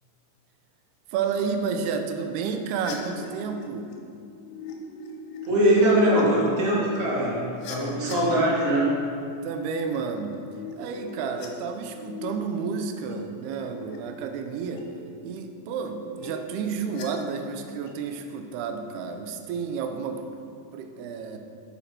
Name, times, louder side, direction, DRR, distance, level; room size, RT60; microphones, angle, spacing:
voice 1, 1.1-3.9 9.4-10.4 10.8-14.9 15.2-20.2 20.7-21.4, right 5 dB, 80° right, 6 dB, 2.5 m, -31 dB
sound 1, 2.8-8.5 9.4-11.5 11.7-12.3 12.7-13.1 13.4-14.0 14.3-14.8 15.7-17.0 17.4-17.9, left 3 dB, 75° left, 3.2 m, -41 dB
voice 2, 5.4-9.0, right 1 dB, 30° right, -6 dB, 1.7 m, -22 dB
9.2 x 8.0 x 5.8 m, 2.4 s
omnidirectional pair, 5.1 m